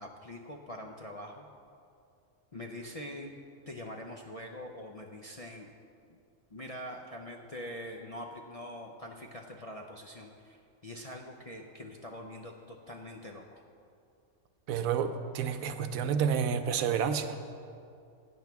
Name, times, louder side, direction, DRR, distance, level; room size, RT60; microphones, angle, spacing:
voice 1, 0.0-1.5 2.5-3.3 3.7-5.7 6.1-6.2 6.5-13.6, left 1 dB, 45° left, 0 dB, 0.4 m, -44 dB
voice 2, 14.7-17.4, right 7 dB, 80° right, 9 dB, 1.1 m, -30 dB
16.5 x 8.7 x 3.5 m, 2.4 s
omnidirectional pair, 1.4 m